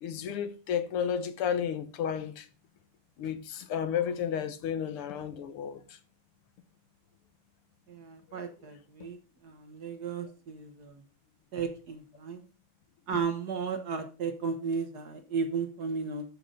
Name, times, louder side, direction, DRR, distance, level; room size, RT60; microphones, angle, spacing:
voice 1, 0.0-2.5 3.2-6.0 8.3-8.4 13.1-13.2, left 8 dB, 85° left, 1.9 m, -32 dB
voice 2, 7.9-9.2 9.4-11.0 11.5-12.4 13.1-16.2, right 5 dB, 50° right, 1.6 m, -34 dB
13.5 x 5.8 x 3.7 m
omnidirectional pair, 2.4 m